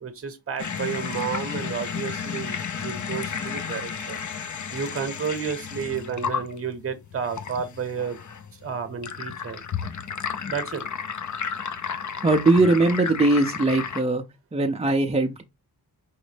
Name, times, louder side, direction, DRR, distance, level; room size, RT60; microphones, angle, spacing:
voice 1, 0.0-4.2 4.7-8.2 8.6-9.6 10.5-10.8, right 6 dB, 35° right, 0.8 m, -31 dB
sound 1, 0.6-14.0, left 7 dB, 50° left, 0.5 m, -33 dB
voice 2, 12.2-14.2 14.5-15.4, right 2 dB, 15° right, 0.4 m, -20 dB
4.9 x 3.1 x 3.3 m
wide cardioid pair, 125°, 39 cm